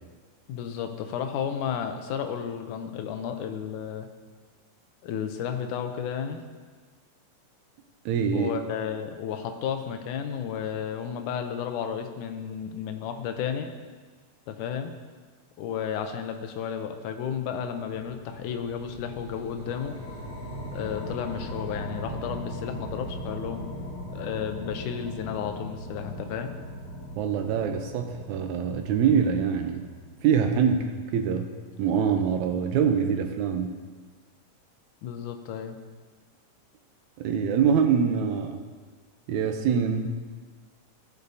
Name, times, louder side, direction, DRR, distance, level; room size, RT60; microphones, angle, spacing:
voice 1, 0.5-4.1 5.0-6.4 8.3-13.7 14.5-15.0 15.6-20.0 20.7-23.7 24.1-26.5 35.0-35.8, left 8 dB, 80° left, 6 dB, 2.1 m, -32 dB
voice 2, 8.1-8.5 27.2-29.8 30.2-31.5 31.8-33.8 37.2-38.6 39.3-40.1, right 7 dB, 80° right, 6 dB, 1.9 m, -24 dB
sound 1, 17.9-30.4, equal, 60° left, 0.9 m, -39 dB
16.0 x 6.7 x 2.7 m, 1.4 s
omnidirectional pair, 3.7 m